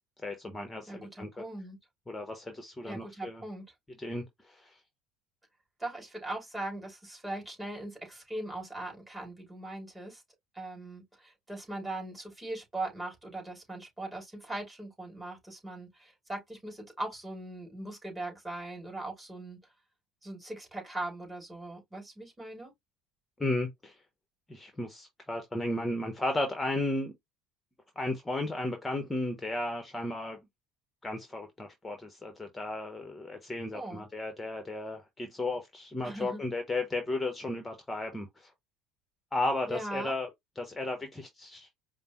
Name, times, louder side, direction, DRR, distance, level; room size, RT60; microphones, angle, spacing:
voice 1, 0.2-1.4 2.1-3.4 4.0-4.8 23.4-23.9 24.5-27.1 28.0-30.4 31.0-38.5 39.3-40.3 40.6-41.7, left 2 dB, 15° left, 0.9 m, -34 dB
voice 2, 0.9-1.8 2.8-3.7 5.8-10.2 10.5-19.6 20.2-22.7 33.7-34.0 36.0-36.4 39.7-40.1, right 2 dB, 15° right, 3.1 m, -40 dB
5.1 x 2.0 x 3.0 m
hypercardioid pair, 70°, 0 cm